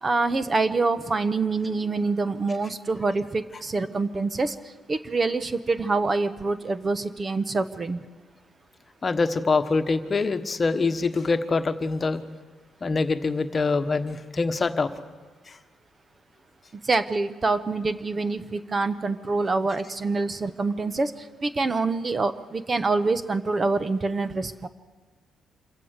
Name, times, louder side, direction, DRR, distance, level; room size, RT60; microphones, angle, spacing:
voice 1, 0.0-4.5 4.9-8.0 16.9-21.1 21.4-24.7, right 3 dB, 30° right, 12 dB, 0.9 m, -26 dB
voice 2, 9.0-12.2 12.8-14.9 15.5-15.6, left 4 dB, 35° left, 9 dB, 1.3 m, -24 dB
26.5 x 15.5 x 6.6 m, 1.4 s
cardioid pair, 90°, 0 cm